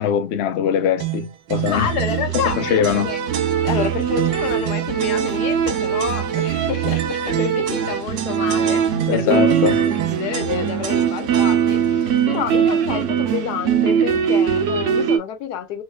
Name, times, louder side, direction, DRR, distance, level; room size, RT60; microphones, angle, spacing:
voice 1, 0.0-1.9 2.6-3.1 9.1-9.8, left 8 dB, 70° left, 0.6 m, -21 dB
sound 1, 1.0-11.9, right 14 dB, 80° right, 1.1 m, -29 dB
sound 2, 1.5-15.2, right 8 dB, 65° right, 0.8 m, -21 dB
voice 2, 1.7-3.2 3.6-15.8, left 9 dB, 90° left, 1.3 m, -28 dB
3.2 x 3.0 x 2.2 m
omnidirectional pair, 1.7 m